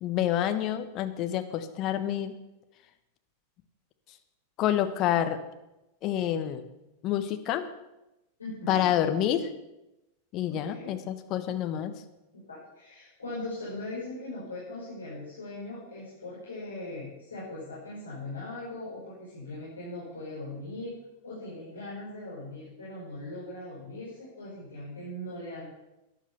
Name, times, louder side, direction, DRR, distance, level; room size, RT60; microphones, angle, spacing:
voice 1, 0.0-2.3 4.6-5.4 6.0-6.6 7.0-7.6 8.7-9.5 10.3-11.9, left 11 dB, 35° left, 9 dB, 1.3 m, -28 dB
voice 2, 8.4-8.9 10.5-10.9 12.5-25.6, left 2 dB, 75° left, -7 dB, 5.5 m, -40 dB
12.5 x 10.5 x 7.0 m, 0.96 s
figure-of-eight pair, 90°, 0 cm